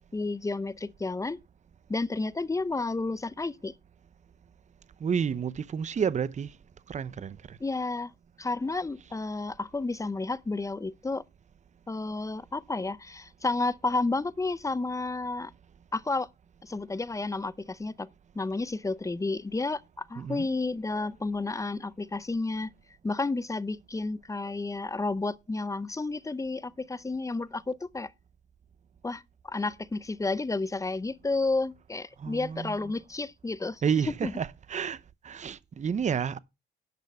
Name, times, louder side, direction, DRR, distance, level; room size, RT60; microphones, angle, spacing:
voice 1, 0.1-1.4 1.9-3.7 7.6-8.1 8.4-11.2 11.9-15.5 15.9-16.3 16.6-18.1 18.3-22.7 23.0-28.1 29.0-33.8 34.2-34.3, left 3 dB, 15° left, 0.6 m, -31 dB
voice 2, 5.0-6.5 6.9-7.6 20.2-20.5 32.2-32.9 33.8-35.0 35.2-36.4, right 7 dB, 35° right, 0.7 m, -30 dB
10.5 x 5.4 x 6.7 m
cardioid pair, 90°, 20 cm